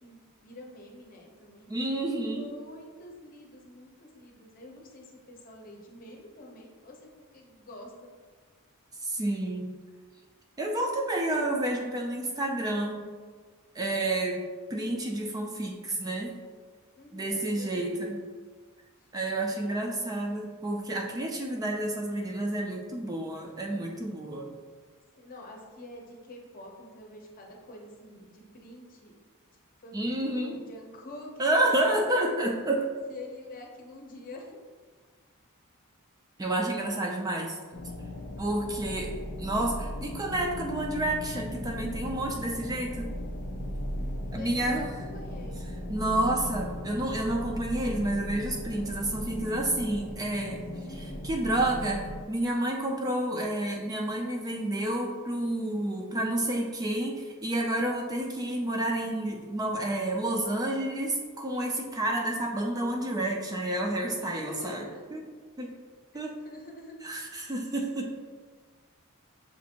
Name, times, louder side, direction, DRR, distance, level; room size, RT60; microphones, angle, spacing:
voice 1, 0.0-1.7 2.1-8.1 17.0-18.1 19.0-19.1 19.9-20.2 25.2-29.1 29.8-32.0 33.1-34.6 44.0-45.6 49.8-50.2 50.7-51.2 64.2-65.1 66.4-66.9, left 1 dB, 40° left, 0 dB, 0.7 m, -47 dB
voice 2, 1.7-2.4 9.0-9.7 10.6-13.0 13.7-16.4 17.1-18.2 19.1-24.5 29.9-30.6 31.4-32.9 36.4-37.6 38.4-43.1 44.3-44.9 45.9-50.6 51.2-64.9 65.1-65.2 65.6-65.7 66.1-66.4 67.0-68.1, right 1 dB, 15° right, 1 dB, 0.3 m, -30 dB
sound 1, 37.7-52.2, left 1 dB, 80° left, 0.5 m, -37 dB
6.8 x 2.5 x 2.8 m, 1.5 s
head